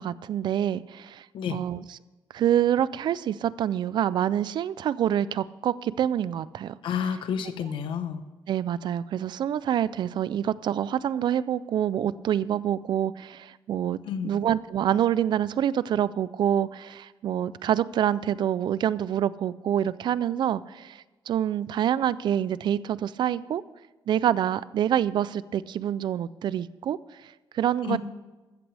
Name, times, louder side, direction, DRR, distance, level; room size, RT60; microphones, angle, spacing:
voice 1, 0.0-1.3 1.5-1.8 2.3-6.7 8.5-23.6 24.1-28.0, right 10 dB, 65° right, 18 dB, 0.4 m, -26 dB
voice 2, 6.8-8.2 14.0-14.3 27.8-28.0, left 8 dB, 75° left, 9 dB, 1.1 m, -30 dB
14.5 x 14.0 x 3.4 m, 1.2 s
cardioid pair, 145°, 8 cm